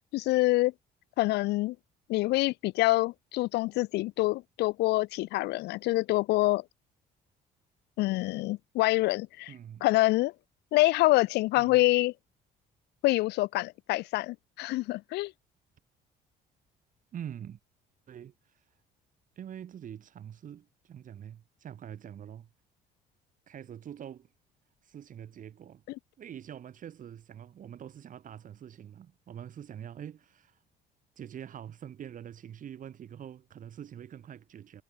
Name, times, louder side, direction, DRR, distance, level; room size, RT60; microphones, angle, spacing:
voice 1, 0.1-0.7 1.2-1.8 2.1-6.6 8.0-9.5 9.8-10.3 10.7-12.1 13.0-15.3, left 19 dB, 80° left, 0.6 m, -26 dB
voice 2, 9.5-9.9 11.6-11.8 17.1-17.6 18.1-18.6 19.4-22.5 23.5-24.3 24.8-25.8 26.2-30.6 31.2-34.8, right 9 dB, 50° right, 4.4 m, -45 dB
cardioid pair, 110°, 17 cm